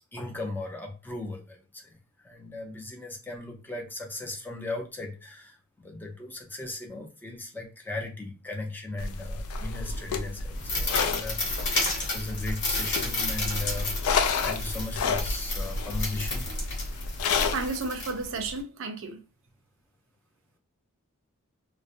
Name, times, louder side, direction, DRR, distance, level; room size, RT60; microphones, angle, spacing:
voice 1, 0.1-2.0 2.2-16.5, left 2 dB, 10° left, 0.5 m, -37 dB
sound 1, 9.0-17.7, left 4 dB, 70° left, 0.3 m, -30 dB
sound 2, 10.5-18.6, left 2 dB, 55° left, 1.0 m, -33 dB
voice 2, 17.5-19.2, right 3 dB, 65° right, 0.5 m, -32 dB
2.4 x 2.0 x 2.6 m
head